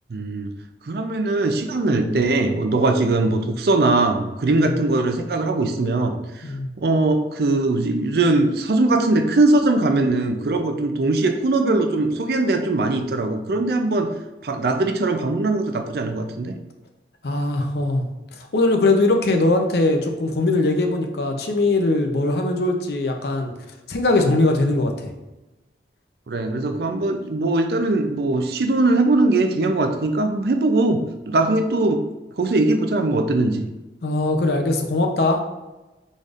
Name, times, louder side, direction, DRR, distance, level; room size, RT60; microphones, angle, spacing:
voice 1, 0.1-0.5 0.9-6.4 6.8-14.1 14.4-16.6 26.3-32.0 32.4-33.7, right 2 dB, 60° right, 6 dB, 0.4 m, -21 dB
voice 2, 17.2-18.1 18.5-23.5 23.9-24.9 34.0-35.4, left 2 dB, 65° left, 4 dB, 0.6 m, -20 dB
5.0 x 4.0 x 2.5 m, 1.1 s
head